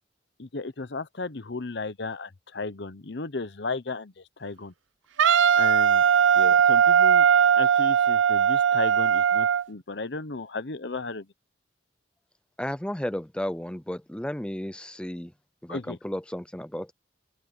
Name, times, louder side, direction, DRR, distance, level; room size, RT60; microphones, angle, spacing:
voice 1, 0.4-4.7 5.6-6.0 6.7-7.3 7.6-11.3 15.7-16.0, left 3 dB, 65° left, 0.9 m, -34 dB
Wind instrument woodwind instrument, 5.2-9.6, right 8 dB, 90° right, 0.5 m, -19 dB
voice 2, 12.6-15.3 15.6-16.9, left 1 dB, 5° left, 0.5 m, -33 dB
open air
head